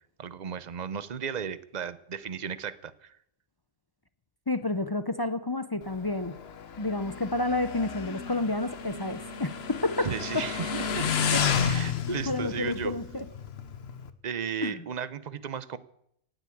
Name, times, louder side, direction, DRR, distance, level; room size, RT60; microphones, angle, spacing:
voice 1, 0.2-3.2 10.0-11.1 11.6-12.9 14.2-15.8, right 7 dB, 40° right, 15 dB, 0.8 m, -35 dB
voice 2, 4.5-6.4 6.8-10.5 11.3-11.4 12.1-13.2 14.6-14.8, left 2 dB, 30° left, 11 dB, 0.5 m, -30 dB
Motorcycle, 5.8-14.1, left 6 dB, 55° left, 1.1 m, -32 dB
sound 1, 7.0-13.2, right 1 dB, 5° right, 6.5 m, -50 dB
18.0 x 8.1 x 8.5 m, 0.74 s
omnidirectional pair, 1.3 m